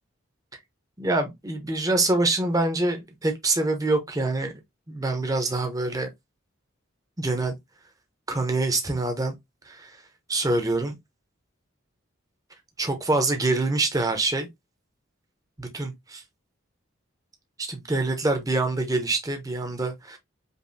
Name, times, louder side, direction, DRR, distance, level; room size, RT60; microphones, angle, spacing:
voice 1, 1.0-4.5 4.9-6.1 7.2-7.5 8.3-9.3 9.7-10.0 10.3-10.9 12.8-14.5 15.6-16.2 17.6-20.2, right 2 dB, 15° right, 0.8 m, -25 dB
5.3 x 2.6 x 2.6 m
head